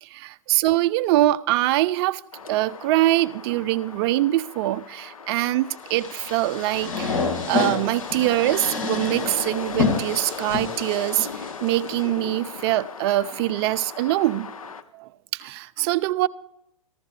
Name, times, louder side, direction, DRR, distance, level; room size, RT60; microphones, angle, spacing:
voice 1, 0.0-2.2 2.5-7.2 7.5-14.7 14.9-16.3, right 16 dB, 50° right, 0.5 m, -23 dB
sound 1, 2.3-14.8, left 5 dB, 90° left, 0.7 m, -38 dB
sound 2, 5.9-12.0, left 4 dB, 75° left, 2.4 m, -28 dB
14.5 x 12.0 x 3.3 m
hypercardioid pair, 105°, 17 cm